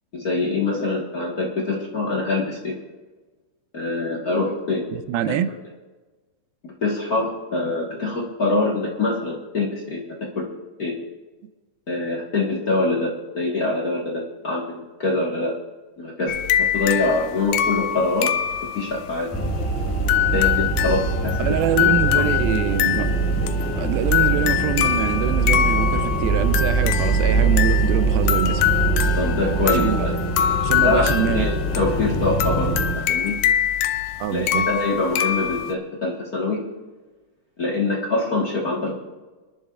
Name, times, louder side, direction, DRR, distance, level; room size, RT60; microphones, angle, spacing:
voice 1, 0.1-2.7 3.7-4.9 5.3-5.4 6.6-10.0 10.3-10.5 10.8-10.9 11.9-15.5 16.0-16.3 16.7-18.3 18.7-19.3 20.3-22.2 29.2-30.1 30.8-33.3 34.3-36.6 37.6-38.9, left 2 dB, 60° left, 0.9 m, -24 dB
voice 2, 4.9-5.5 21.4-23.1 23.8-28.7 29.6-30.1 30.6-31.6 34.2-34.7, right 10 dB, 85° right, 2.5 m, -25 dB
sound 1, 16.3-35.7, left 11 dB, 85° left, 1.7 m, -24 dB
sound 2, 19.3-33.0, right 3 dB, 10° left, 0.6 m, -23 dB
27.5 x 10.5 x 2.4 m
omnidirectional pair, 4.2 m